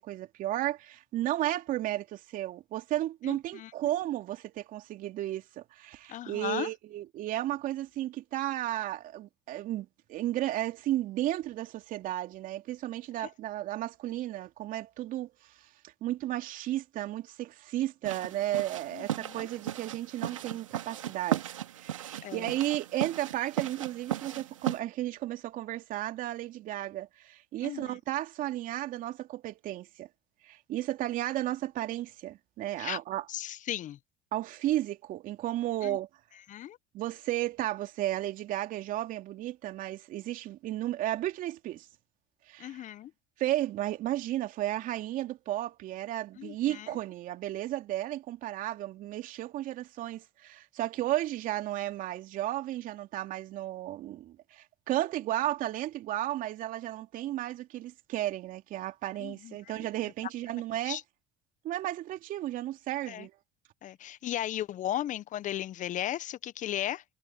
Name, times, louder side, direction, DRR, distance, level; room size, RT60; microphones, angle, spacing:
voice 1, 0.0-15.7 16.0-30.1 30.4-33.2 34.3-36.1 36.9-41.9 42.5-42.9 43.4-61.0 61.6-63.3, right 14 dB, 60° right, 2.8 m, -33 dB
voice 2, 3.3-3.7 6.1-6.7 13.2-13.3 18.9-19.5 22.2-22.5 27.6-28.0 32.8-33.0 33.3-34.0 35.8-36.0 36.5-36.8 42.6-43.1 46.4-46.9 59.2-59.9 60.8-61.0 63.1-63.3 63.8-67.0, left 12 dB, 50° left, 1.3 m, -36 dB
sound 1, 18.0-24.8, right 11 dB, 90° right, 3.0 m, -36 dB
hypercardioid pair, 65°, 16 cm